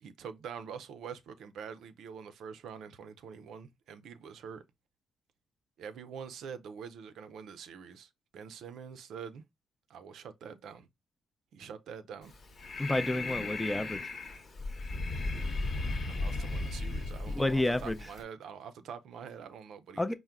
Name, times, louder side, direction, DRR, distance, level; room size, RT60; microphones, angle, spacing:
voice 1, 0.0-4.6 5.8-9.4 9.9-10.9 11.5-12.3 16.1-20.1, right 7 dB, 75° right, 0.5 m, -45 dB
Breathing, 12.2-18.2, left 2 dB, 40° left, 1.0 m, -36 dB
voice 2, 12.8-14.0 17.3-18.0 20.0-20.1, left 1 dB, 10° left, 0.5 m, -30 dB
4.4 x 2.1 x 3.5 m
cardioid pair, 90°, 0 cm